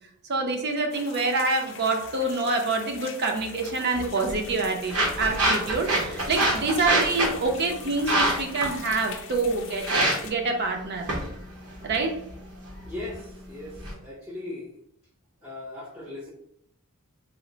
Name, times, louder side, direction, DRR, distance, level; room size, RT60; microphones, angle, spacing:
voice 1, 0.3-9.8 10.2-11.1 11.8-12.2, right 3 dB, 50° right, 2 dB, 0.6 m, -26 dB
sound 1, 0.9-10.3, left 7 dB, 60° left, 0.4 m, -43 dB
sound 2, 3.9-13.9, right 1 dB, 80° right, 1.0 m, -28 dB
voice 2, 12.9-14.8 15.4-16.3, left 2 dB, 5° right, -5 dB, 0.7 m, -38 dB
3.1 x 2.0 x 3.8 m, 0.71 s
head